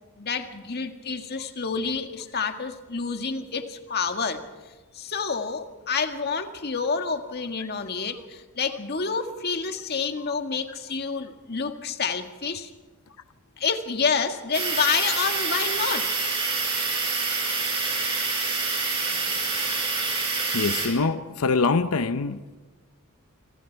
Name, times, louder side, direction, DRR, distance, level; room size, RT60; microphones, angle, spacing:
voice 1, 0.2-4.4 4.9-12.7 13.6-16.1, left 5 dB, 45° left, 7 dB, 1.8 m, -28 dB
sound 1, 14.5-20.9, right 4 dB, 25° right, 6.8 m, -27 dB
voice 2, 19.5-19.9 20.5-22.6, left 4 dB, 75° left, 11 dB, 0.8 m, -25 dB
28.0 x 25.5 x 4.6 m, 1.3 s
head